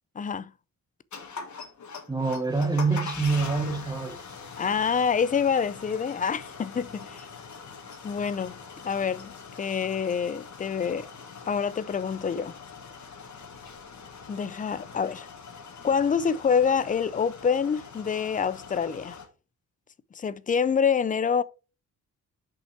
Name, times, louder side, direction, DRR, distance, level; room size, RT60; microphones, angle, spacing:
voice 1, 0.2-0.5 4.6-7.3 8.0-8.5 8.8-11.1 11.5-12.6 14.3-15.3 15.8-19.2 20.1-21.4, left 6 dB, 25° left, 0.3 m, -26 dB
sound 1, 1.1-19.3, left 5 dB, 55° left, 1.7 m, -43 dB
voice 2, 2.1-4.2, right 4 dB, 10° right, 1.1 m, -26 dB
6.6 x 5.4 x 4.5 m
wide cardioid pair, 145°, 35 cm